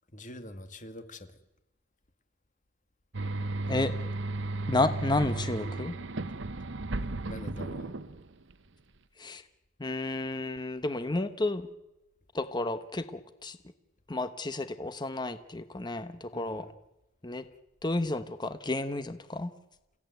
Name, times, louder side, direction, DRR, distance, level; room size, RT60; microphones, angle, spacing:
voice 1, 0.1-1.4 7.3-8.0 13.5-13.6 16.3-16.7, left 1 dB, 40° left, 8 dB, 2.2 m, -45 dB
sound 1, 3.1-8.5, right 2 dB, 65° right, 1.0 m, -34 dB
voice 2, 4.7-5.9 9.2-9.4 9.8-11.7 12.3-13.6 14.1-16.7 17.2-17.4 17.8-19.5, left 2 dB, 20° left, 11 dB, 1.0 m, -31 dB
28.0 x 16.0 x 9.4 m, 0.96 s
head